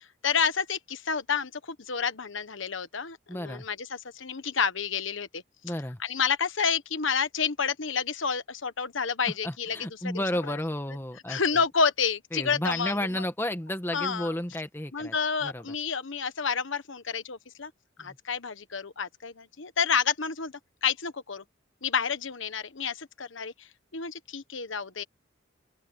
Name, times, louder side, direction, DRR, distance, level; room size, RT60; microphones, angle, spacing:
voice 1, 0.0-5.4 6.0-9.8 10.0-10.2 11.3-12.9 13.9-14.3 14.9-17.7 18.0-20.5 20.8-21.4 21.8-25.0, left 6 dB, 75° left, 1.3 m, -29 dB
voice 2, 3.3-3.7 5.6-6.0 9.3-11.4 12.3-15.1 15.4-15.6 18.0-18.2, left 1 dB, 10° left, 1.3 m, -32 dB
open air
head